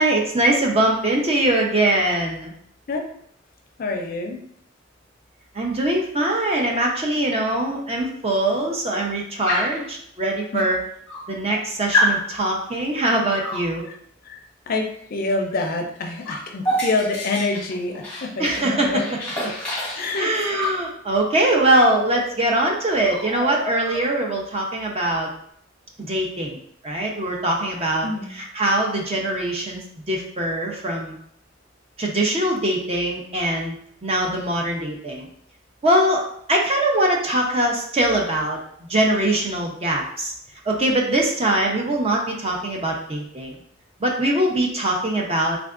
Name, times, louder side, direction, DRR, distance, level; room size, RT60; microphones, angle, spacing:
voice 1, 0.0-2.5 5.5-10.8 11.3-13.8 18.4-19.0 20.1-25.3 26.1-26.6 26.8-28.1 28.3-31.2 32.0-33.7 34.0-35.3 35.8-36.2 36.5-38.6 38.9-40.3 40.7-43.5 44.0-45.6, right 1 dB, 30° right, -1 dB, 0.6 m, -22 dB
voice 2, 3.8-4.4 10.5-10.6 13.9-14.0 14.2-14.4 14.7-19.0 19.9-20.3 28.0-28.3, left 3 dB, 50° left, 3 dB, 0.5 m, -26 dB
Dog, 9.5-9.9 10.7-10.8 11.1-11.6 11.9-12.2 13.4-13.7 15.5-15.7 16.0-18.7 19.0-20.8 22.1-22.2 22.5-22.7 23.0-24.3, left 1 dB, 5° left, 1.0 m, -27 dB
3.5 x 3.4 x 2.4 m, 0.66 s
head